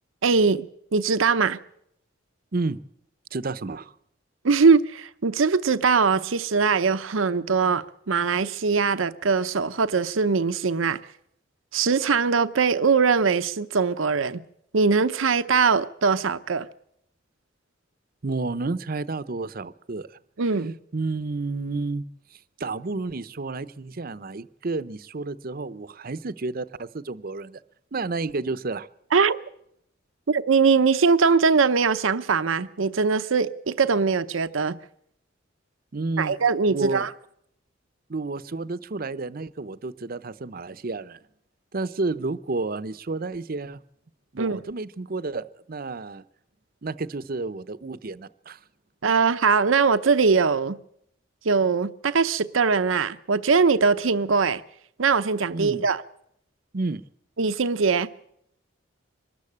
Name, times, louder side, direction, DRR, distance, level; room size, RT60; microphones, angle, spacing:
voice 1, 0.2-0.7 0.9-1.6 4.4-11.0 11.7-14.4 14.7-16.7 20.4-20.7 29.1-29.4 30.3-34.8 36.2-37.1 44.4-44.6 49.0-50.8 51.4-54.6 55.0-56.0 57.4-58.1, right 5 dB, 85° right, 0.7 m, -21 dB
voice 2, 3.3-3.9 18.2-20.2 20.9-22.0 22.3-27.6 27.9-28.9 35.9-36.3 36.7-37.1 38.1-41.2 41.7-43.8 44.3-46.2 46.8-48.6 55.5-55.8 56.7-57.0, right 3 dB, 45° right, 0.7 m, -31 dB
23.5 x 13.5 x 8.5 m
head